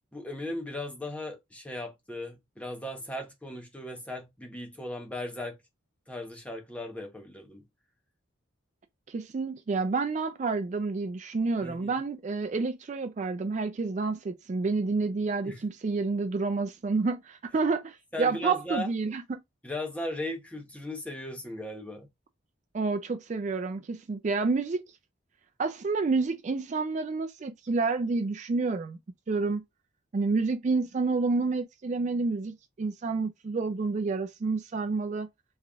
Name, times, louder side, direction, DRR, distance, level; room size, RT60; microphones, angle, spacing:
voice 1, 0.1-5.6 6.1-7.7 11.6-12.0 15.4-15.6 18.1-18.9 19.6-22.1, left 1 dB, 5° left, 0.7 m, -37 dB
voice 2, 9.1-19.4 22.7-24.8 25.6-29.0 29.3-29.6 30.1-35.3, right 4 dB, 35° right, 0.3 m, -29 dB
3.5 x 3.4 x 2.2 m
head